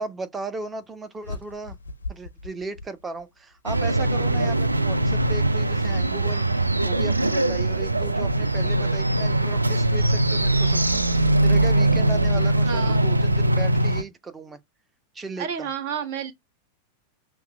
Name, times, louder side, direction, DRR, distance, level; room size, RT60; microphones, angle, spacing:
voice 1, 0.0-1.8 2.1-14.6 15.1-15.7, right 3 dB, 15° right, 0.6 m, -36 dB
sound 1, 1.2-3.6, left 3 dB, 75° left, 0.4 m, -39 dB
sound 2, 3.7-14.0, right 2 dB, 85° right, 0.4 m, -21 dB
voice 2, 12.6-13.1 15.4-16.3, right 7 dB, 50° right, 0.7 m, -30 dB
5.7 x 2.0 x 3.2 m
figure-of-eight pair, 90°, 0 cm